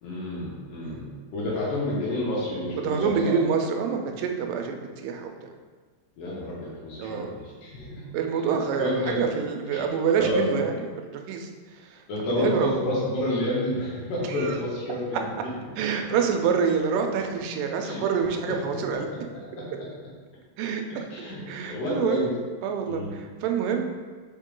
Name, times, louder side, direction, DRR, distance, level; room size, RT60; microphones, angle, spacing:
voice 1, 0.0-3.4 6.2-8.2 8.5-9.2 9.7-9.9 10.2-10.4 12.1-15.2 17.8-18.0 18.7-19.0 19.3-19.7 20.9-22.3 22.9-23.1, left 1 dB, 85° left, -5 dB, 3.2 m, -29 dB
voice 2, 2.8-5.3 7.0-7.3 8.1-10.8 11.3-11.5 11.8-12.0 12.4-12.7 14.3-14.6 15.8-19.1 20.6-21.1 21.5-22.3 22.6-24.0, right 6 dB, 85° right, 4 dB, 2.2 m, -27 dB
5.6 x 4.4 x 3.7 m, 1.5 s
omnidirectional pair, 3.8 m